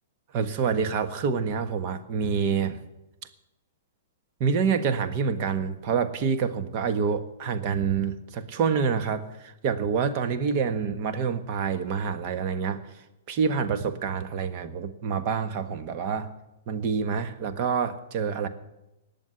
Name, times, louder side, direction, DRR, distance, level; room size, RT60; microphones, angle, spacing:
voice 1, 0.3-2.8 4.4-12.8 13.3-16.3 16.7-18.5, right 6 dB, 40° right, 9 dB, 1.5 m, -27 dB
19.5 x 7.5 x 9.7 m, 0.95 s
hypercardioid pair, 145°, 0 cm